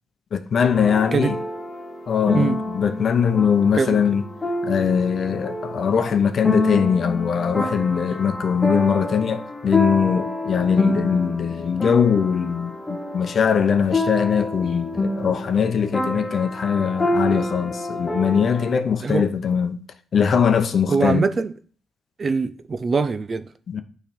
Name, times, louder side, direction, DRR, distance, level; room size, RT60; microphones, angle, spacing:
voice 1, 0.3-1.4 2.1-4.2 4.6-19.8 20.1-21.3 23.7-23.8, left 7 dB, 55° left, 0.7 m, -21 dB
sound 1, 0.7-18.8, left 2 dB, 20° left, 1.2 m, -28 dB
voice 2, 20.9-21.5 22.2-23.5, right 4 dB, 40° right, 0.6 m, -22 dB
9.0 x 3.3 x 5.2 m
cardioid pair, 65°, 0 cm